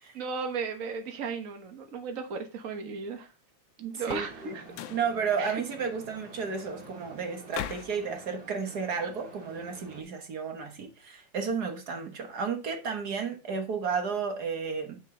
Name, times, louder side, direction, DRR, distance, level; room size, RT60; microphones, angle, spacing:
voice 1, 0.1-3.3 3.9-4.6 5.4-5.6, right 5 dB, 70° right, 0.7 m, -35 dB
voice 2, 3.8-4.5 4.9-15.0, right 5 dB, 55° right, 1.1 m, -32 dB
sound 1, 4.0-4.4 4.7-5.1 7.5-8.0, left 12 dB, 90° left, 2.1 m, -38 dB
sound 2, 4.1-10.0, right 3 dB, 35° right, 2.2 m, -49 dB
9.0 x 7.0 x 3.7 m
omnidirectional pair, 3.4 m